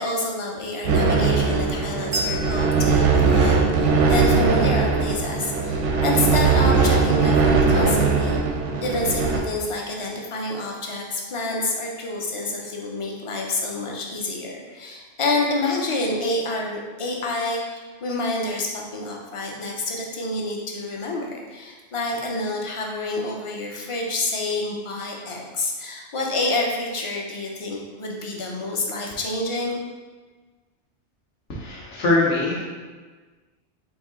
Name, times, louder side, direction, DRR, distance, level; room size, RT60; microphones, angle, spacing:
voice 1, 0.0-8.4 8.8-29.7, left 2 dB, 50° left, -1 dB, 0.4 m, -28 dB
sound 1, 0.8-9.4, right 4 dB, 85° right, 0.9 m, -20 dB
Bell, 2.1-5.2, right 1 dB, 60° right, 0.5 m, -36 dB
voice 2, 31.5-32.6, left 2 dB, 75° left, -5 dB, 1.2 m, -22 dB
4.2 x 2.8 x 3.5 m, 1.4 s
omnidirectional pair, 1.2 m